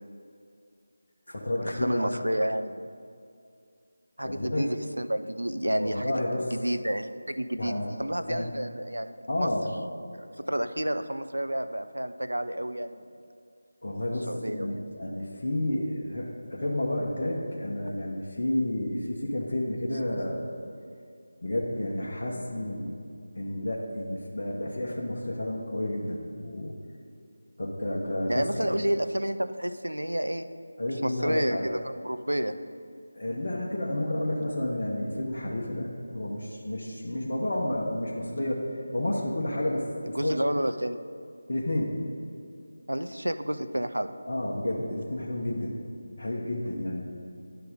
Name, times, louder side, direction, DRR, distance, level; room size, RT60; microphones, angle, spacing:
voice 1, 1.3-2.1 4.2-4.7 5.8-6.4 7.6-7.9 8.3-8.5 9.3-9.7 13.8-20.4 21.4-23.0 23.3-26.7 27.6-28.8 30.8-31.6 33.1-38.6 38.9-40.4 41.5-41.9 44.3-45.7 46.1-47.1, left 1 dB, 45° left, -4 dB, 1.1 m, -31 dB
voice 2, 1.8-2.9 4.2-9.1 9.4-9.5 10.1-13.1 14.3-14.7 28.3-30.5 31.0-32.6 40.1-41.0 42.9-44.1, right 1 dB, 80° right, 10 dB, 0.5 m, -30 dB
11.0 x 4.6 x 5.1 m, 2.4 s
figure-of-eight pair, 160°, 0 cm